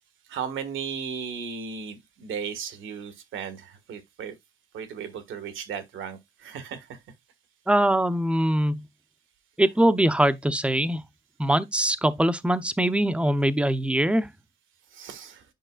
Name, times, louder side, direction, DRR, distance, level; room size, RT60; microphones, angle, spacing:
voice 1, 0.3-4.3 4.7-7.0 14.9-15.4, right 7 dB, 80° right, 1.5 m, -35 dB
voice 2, 7.7-8.9 9.6-11.0 11.4-14.3, right 1 dB, 5° right, 0.6 m, -22 dB
9.1 x 5.3 x 2.3 m
cardioid pair, 90°, 20 cm